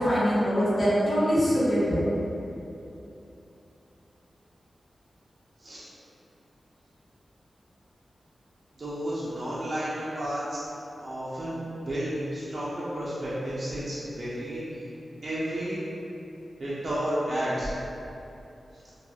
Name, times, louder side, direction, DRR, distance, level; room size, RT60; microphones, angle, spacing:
voice 1, 0.0-2.0, equal, 35° left, -11 dB, 1.0 m, -23 dB
voice 2, 8.7-10.6 11.0-14.9 15.2-15.8 16.6-17.7, right 1 dB, 45° right, -10 dB, 0.5 m, -32 dB
3.0 x 2.3 x 2.3 m, 2.8 s
wide cardioid pair, 80°, 0 cm